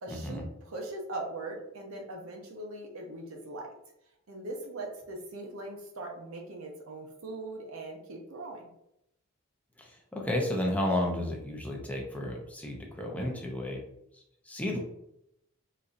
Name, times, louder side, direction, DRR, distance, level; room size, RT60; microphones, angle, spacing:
voice 1, 0.0-3.7 4.3-8.7, right 2 dB, 70° right, 1 dB, 0.7 m, -40 dB
voice 2, 9.8-13.8 14.5-14.8, left 1 dB, 5° left, -1 dB, 0.5 m, -32 dB
3.9 x 2.8 x 2.5 m, 0.80 s
head